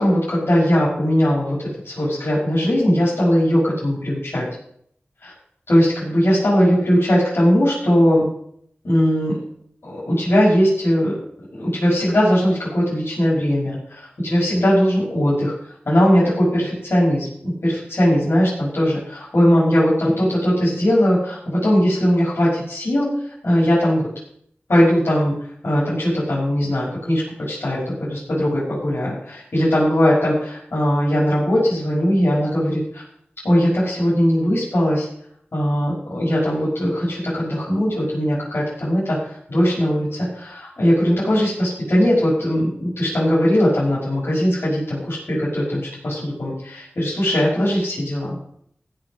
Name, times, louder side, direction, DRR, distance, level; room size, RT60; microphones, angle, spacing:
voice 1, 0.0-1.6 1.8-4.5 5.2-5.3 5.7-8.3 8.8-9.4 9.8-11.1 11.6-15.5 15.9-23.1 23.4-24.0 24.7-25.3 25.6-27.2 27.5-33.0 33.4-35.1 35.5-39.2 39.5-48.4, equal, 75° left, -9 dB, 5.9 m, -19 dB
16.0 x 6.0 x 6.3 m, 0.68 s
wide cardioid pair, 75°, 4 cm